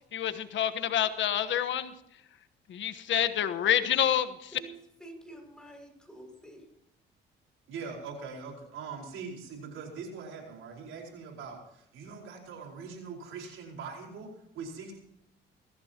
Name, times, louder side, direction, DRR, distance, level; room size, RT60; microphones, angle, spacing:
voice 1, 0.1-1.9 2.7-4.5, left 10 dB, 70° left, 11 dB, 1.2 m, -28 dB
voice 2, 4.5-6.7, right 2 dB, 5° left, 3 dB, 6.4 m, -48 dB
voice 3, 7.7-15.0, right 5 dB, 85° right, 1 dB, 4.9 m, -42 dB
22.0 x 15.5 x 3.0 m, 0.78 s
cardioid pair, 90°, 20 cm